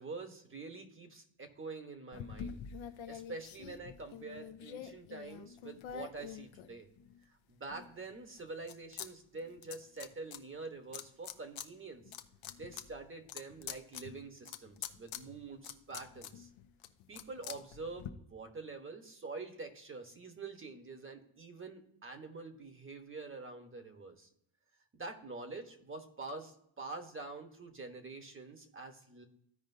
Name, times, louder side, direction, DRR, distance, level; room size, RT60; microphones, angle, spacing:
voice 1, 0.0-2.6 3.1-6.9 7.3-12.0 12.6-16.5 17.1-24.3 24.9-29.3, right 3 dB, 25° right, 6 dB, 1.2 m, -46 dB
sound 1, 2.1-7.2 7.7-9.1 9.3-10.4 10.9-11.7 12.0-18.1, left 9 dB, 65° left, 0.8 m, -46 dB
14.5 x 5.0 x 2.7 m, 0.72 s
cardioid pair, 130°, 49 cm